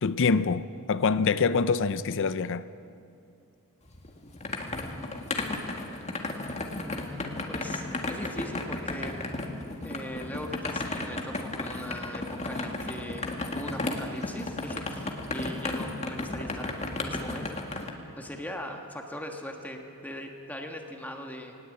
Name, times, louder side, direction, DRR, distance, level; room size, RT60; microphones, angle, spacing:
voice 1, 0.0-2.6, left 5 dB, 60° left, 0.5 m, -25 dB
sound 1, 3.9-17.9, left 2 dB, 30° left, 1.8 m, -34 dB
voice 2, 6.7-9.2 9.8-21.5, left 1 dB, 10° left, 1.4 m, -40 dB
19.5 x 18.5 x 8.6 m
head